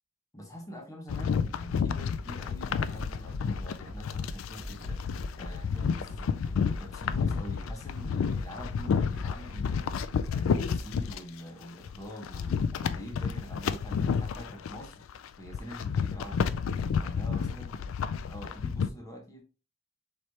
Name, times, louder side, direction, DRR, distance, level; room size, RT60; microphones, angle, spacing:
voice 1, 0.3-5.0 5.3-6.4 6.6-10.0 10.3-15.0 15.4-16.5 17.0-17.8 18.3-19.4, equal, 15° left, 1.2 m, -45 dB
sound 1, 1.1-11.2 11.6-18.9, left 6 dB, 75° left, 0.3 m, -31 dB
Bass drum, 2.7-10.1, equal, 65° right, 1.9 m, -41 dB
4.6 x 3.2 x 2.8 m
head